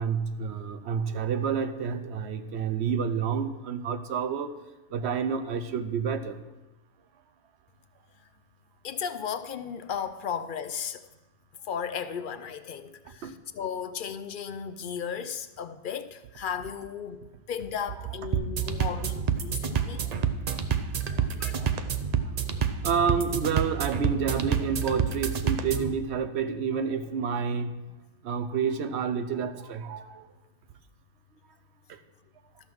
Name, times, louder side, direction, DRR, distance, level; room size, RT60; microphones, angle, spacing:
voice 1, 0.0-4.5 4.9-6.4 13.2-13.4 18.6-19.0 19.7-20.1 21.1-21.8 22.8-27.7 28.2-30.2 31.9-32.0, right 6 dB, 65° right, 0.9 m, -29 dB
voice 2, 8.8-11.1 11.7-20.1 21.2-21.6, left 7 dB, 60° left, 0.6 m, -35 dB
sound 1, 18.3-25.9, right 7 dB, 50° right, 0.5 m, -28 dB
13.0 x 5.7 x 6.0 m
omnidirectional pair, 1.3 m